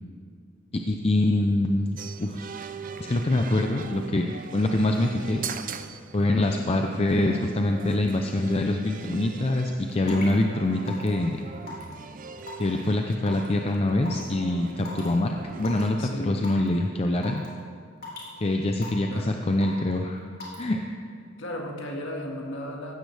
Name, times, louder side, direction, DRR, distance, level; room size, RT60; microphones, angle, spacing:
voice 1, 0.7-2.7 3.0-5.4 6.1-11.4 12.6-17.4 18.4-20.2 20.6-20.8, left 1 dB, 30° left, 4 dB, 0.6 m, -25 dB
sound 1, 2.0-15.9, right 5 dB, 45° right, 0.5 m, -41 dB
Raindrop / Water tap faucet / Drip, 10.1-10.3 10.9-11.2 11.7-11.9 12.5-12.8 13.3-13.5 14.1-14.2 14.9-15.1 15.6-15.8 16.4-16.7 17.2-17.5 18.0-18.3 18.8-19.1 19.6-19.9 20.4-20.6, left 4 dB, 50° left, 3.5 m, -38 dB
voice 2, 16.0-16.5 19.1-19.4 21.4-22.9, left 1 dB, 65° left, 0 dB, 1.9 m, -35 dB
16.0 x 12.5 x 3.4 m, 2.2 s
head